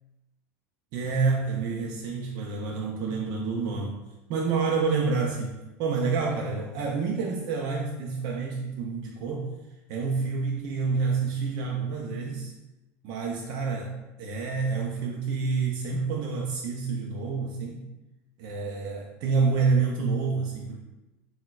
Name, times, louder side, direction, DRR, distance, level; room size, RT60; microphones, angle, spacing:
voice 1, 0.9-4.0 4.3-9.5 9.9-12.5 13.0-17.8 18.4-20.8, right 4 dB, 60° right, -1 dB, 0.4 m, -28 dB
3.9 x 2.1 x 2.4 m, 0.99 s
supercardioid pair, 115°, 8 cm